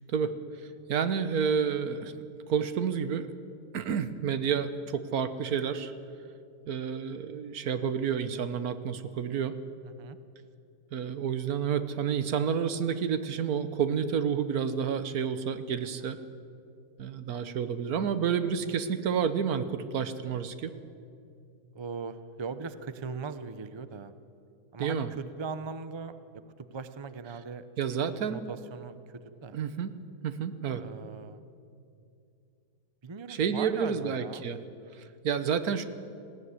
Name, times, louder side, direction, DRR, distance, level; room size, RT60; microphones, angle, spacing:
voice 1, 0.9-2.2 2.5-3.3 3.7-5.9 6.7-9.5 10.9-16.2 17.0-20.7 24.8-25.1 27.8-28.4 29.5-29.9 30.2-30.8 33.3-34.6 34.9-35.8, right 7 dB, 65° right, 11 dB, 1.4 m, -30 dB
voice 2, 9.8-10.2 16.0-16.1 18.6-18.8 21.7-24.1 24.7-26.2 26.6-27.6 27.9-28.0 28.3-29.6 30.8-31.4 33.0-34.4, right 5 dB, 45° right, 12 dB, 0.3 m, -40 dB
19.5 x 15.5 x 9.6 m, 2.5 s
omnidirectional pair, 1.7 m